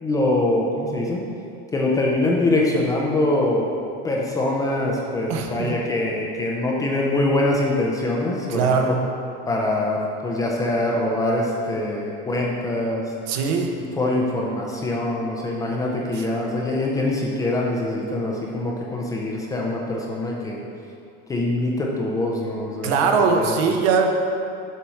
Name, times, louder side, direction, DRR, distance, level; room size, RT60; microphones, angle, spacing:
voice 1, 0.0-1.2 1.7-3.7 4.0-9.0 9.5-13.1 13.8-20.6 21.3-22.9 23.2-23.6, left 2 dB, 10° left, -2 dB, 0.4 m, -24 dB
voice 2, 5.3-5.8 8.5-9.0 13.3-13.8 16.1-16.2 22.8-24.1, right 5 dB, 75° right, 3 dB, 1.0 m, -21 dB
7.0 x 4.5 x 6.1 m, 2.6 s
supercardioid pair, 170°, 31 cm